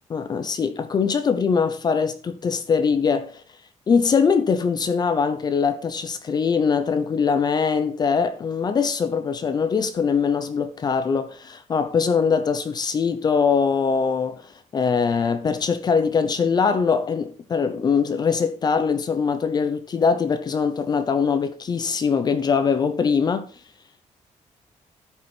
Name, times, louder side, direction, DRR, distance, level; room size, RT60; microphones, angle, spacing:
voice 1, 0.1-3.4 3.9-23.5, left 5 dB, 35° left, 0.7 m, -22 dB
12.5 x 5.5 x 4.5 m
cardioid pair, 175°, 13 cm